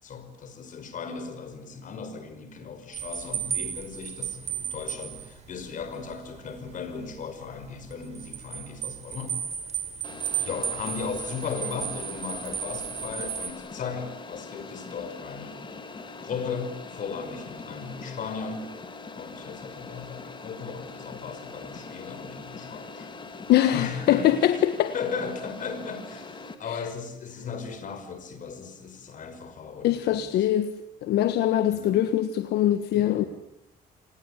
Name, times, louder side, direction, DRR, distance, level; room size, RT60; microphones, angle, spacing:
voice 1, 0.0-9.4 10.4-15.6 16.2-18.8 19.2-23.1 23.7-24.4 24.9-30.3 31.7-32.0 32.9-33.3, left 5 dB, 50° left, 5.4 m, -36 dB
sound 1, 2.9-13.5, right 8 dB, 40° right, 4.5 m, -34 dB
sound 2, 10.0-26.6, left 4 dB, 30° left, 2.9 m, -42 dB
voice 2, 23.5-24.9 26.7-26.8 29.8-30.7 31.0-33.2, left 12 dB, 75° left, 1.5 m, -23 dB
27.5 x 20.0 x 9.9 m
cardioid pair, 110°, 17 cm